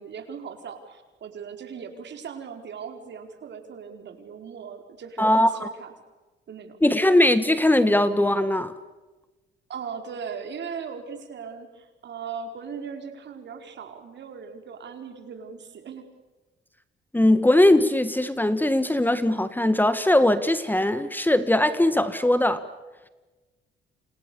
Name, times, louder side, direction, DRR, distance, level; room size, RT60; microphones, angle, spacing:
voice 1, 0.0-5.9 6.5-6.8 9.7-16.1, right 6 dB, 65° right, 6 dB, 4.7 m, -38 dB
voice 2, 5.2-5.7 6.8-8.7 17.1-22.6, left 1 dB, 10° left, 12 dB, 1.7 m, -20 dB
29.5 x 28.0 x 7.1 m, 1.2 s
cardioid pair, 90°, 20 cm